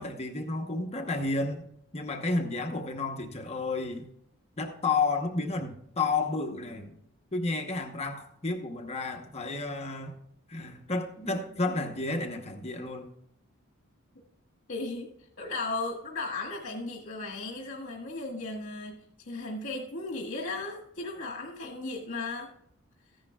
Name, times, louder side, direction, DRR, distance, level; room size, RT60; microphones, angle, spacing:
voice 1, 0.0-1.7 1.9-4.1 4.6-7.0 7.3-10.2 10.5-13.1, left 3 dB, 30° left, 3 dB, 1.0 m, -31 dB
voice 2, 14.7-15.1 15.4-22.5, left 3 dB, 60° left, -1 dB, 1.6 m, -36 dB
14.5 x 10.5 x 2.3 m, 0.71 s
head